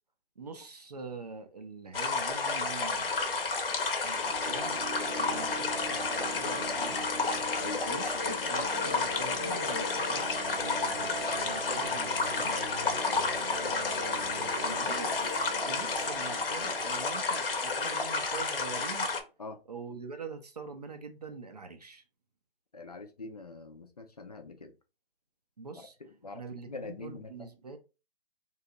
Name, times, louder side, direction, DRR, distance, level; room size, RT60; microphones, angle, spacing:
voice 1, 0.4-3.4 4.0-4.9 5.1-7.1 7.8-12.6 13.5-15.1 15.7-19.1 19.7-22.0 25.6-26.0 26.3-27.8, right 4 dB, 40° right, 0.4 m, -44 dB
sound 1, 1.9-19.2, left 4 dB, 65° left, 0.7 m, -31 dB
sound 2, 4.1-18.8, equal, 5° left, 0.8 m, -41 dB
voice 2, 5.1-5.5 7.6-7.9 13.0-13.2 19.4-19.6 22.7-24.7 26.2-27.3, left 3 dB, 40° left, 0.4 m, -44 dB
2.8 x 2.3 x 3.6 m
hypercardioid pair, 160°, 31 cm